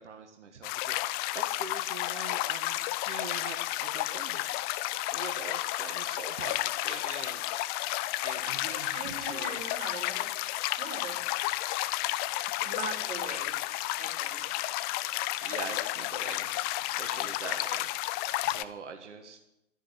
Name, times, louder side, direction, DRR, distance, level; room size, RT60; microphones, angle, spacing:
voice 1, 0.0-9.6 15.4-16.5 16.8-19.4, right 5 dB, 70° right, 4 dB, 1.7 m, -44 dB
sound 1, 0.6-18.6, left 17 dB, 25° left, 0.6 m, -32 dB
voice 2, 8.9-10.3 10.8-11.2 11.8-11.9 12.6-13.6 14.0-14.5, right 4 dB, 20° right, -1 dB, 5.0 m, -41 dB
13.5 x 10.0 x 9.6 m, 0.85 s
figure-of-eight pair, 105°, 37 cm